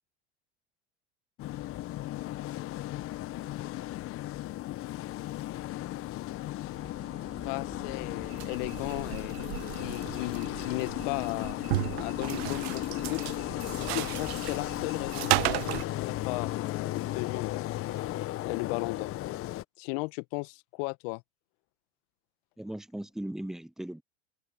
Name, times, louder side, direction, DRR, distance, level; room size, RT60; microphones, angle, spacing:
sound 1, 1.4-19.6, left 15 dB, 40° left, 1.4 m, -35 dB
sound 2, 6.7-16.5, right 5 dB, 20° right, 2.6 m, -50 dB
voice 1, 7.4-9.3 9.7-11.6 12.0-13.2 13.8-17.7 18.4-19.1 19.8-21.2, left 30 dB, 55° left, 1.7 m, -36 dB
sound 3, 8.3-15.8, right 22 dB, 60° right, 1.4 m, -34 dB
voice 2, 22.6-24.0, right 1 dB, ahead, 0.4 m, -38 dB
open air
hypercardioid pair, 85°, 35 cm